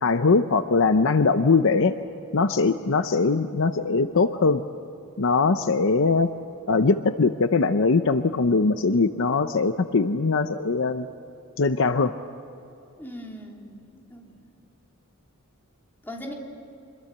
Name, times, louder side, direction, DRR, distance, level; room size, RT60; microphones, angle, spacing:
voice 1, 0.0-1.9 2.3-4.6 5.2-6.3 6.7-11.1 11.6-12.1, left 4 dB, 60° left, 10 dB, 0.7 m, -21 dB
voice 2, 13.0-14.4 16.0-16.3, equal, 10° left, -1 dB, 3.2 m, -40 dB
27.0 x 21.5 x 8.0 m, 2.8 s
head